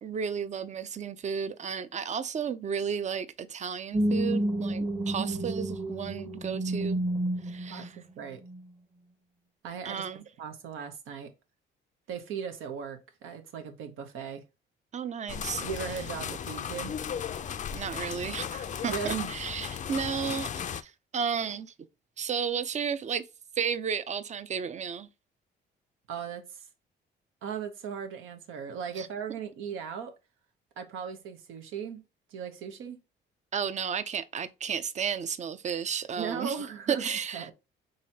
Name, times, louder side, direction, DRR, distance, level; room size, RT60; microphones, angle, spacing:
voice 1, 0.0-7.0 7.4-7.9 9.8-10.2 14.9-15.6 17.7-21.7 22.2-23.2 23.6-25.1 29.0-29.1 33.5-36.6 36.9-37.5, right 7 dB, 35° right, 0.5 m, -33 dB
sound 1, 3.9-7.9 8.4-8.6, right 1 dB, 20° right, 0.9 m, -30 dB
voice 2, 7.7-8.4 9.6-11.3 12.1-14.4 15.6-17.0 18.8-19.3 26.1-26.7 27.4-30.1 30.8-32.0 32.3-33.0 36.2-37.5, right 7 dB, 90° right, 0.8 m, -38 dB
sound 2, 15.3-20.8, left 8 dB, 40° left, 0.4 m, -36 dB
4.0 x 3.1 x 2.7 m
cardioid pair, 90°, 20 cm